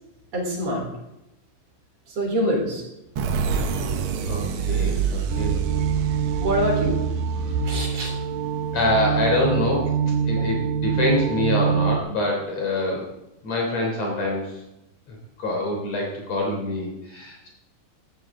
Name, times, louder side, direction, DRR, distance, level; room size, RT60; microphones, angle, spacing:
voice 1, 0.3-0.8 2.1-2.8 6.4-7.0 7.6-8.1 8.7-8.8, equal, 55° right, 0 dB, 5.0 m, -25 dB
sound 1, 3.2-8.7, right 6 dB, 70° right, 1.2 m, -27 dB
voice 2, 4.3-5.6 7.4-7.7 8.7-10.0 10.2-13.1 13.4-14.6 15.1-17.5, left 2 dB, 55° left, -1 dB, 4.5 m, -25 dB
sound 2, 5.3-12.0, right 7 dB, 90° right, 2.5 m, -25 dB
17.0 x 13.5 x 3.8 m, 0.91 s
omnidirectional pair, 3.7 m